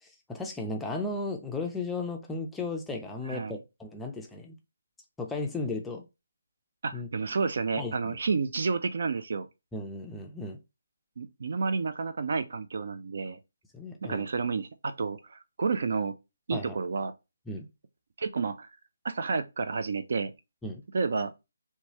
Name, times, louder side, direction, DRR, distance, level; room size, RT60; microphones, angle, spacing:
voice 1, 0.0-4.6 5.2-6.0 6.9-7.1 7.8-8.2 9.7-10.6 13.7-14.3 16.5-16.8 17.5-17.7 20.6-20.8, left 2 dB, 5° left, 0.4 m, -35 dB
voice 2, 3.3-3.6 6.8-9.5 11.2-13.4 14.0-16.1 16.5-17.1 18.2-18.7 19.0-20.3 20.9-21.3, right 4 dB, 60° right, 0.4 m, -30 dB
2.9 x 2.3 x 2.8 m
figure-of-eight pair, 155°, 0 cm